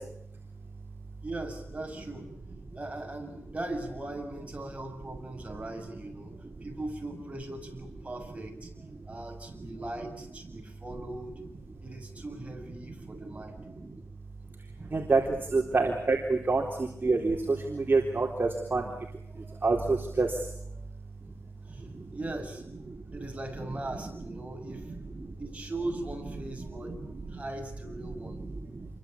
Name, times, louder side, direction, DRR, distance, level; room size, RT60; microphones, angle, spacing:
voice 1, 1.2-2.3 2.7-8.7 9.0-11.4 11.8-13.8 14.8-15.0 19.3-19.6 20.8-20.9 21.3-22.8 23.1-28.4, right 2 dB, 25° right, 3 dB, 7.3 m, -40 dB
voice 2, 14.9-18.9 19.6-20.3 21.9-22.0 24.7-25.3 26.6-27.4 28.2-28.9, right 3 dB, 40° right, -1 dB, 3.9 m, -28 dB
28.0 x 23.5 x 8.7 m, 0.74 s
wide cardioid pair, 115°, 5 cm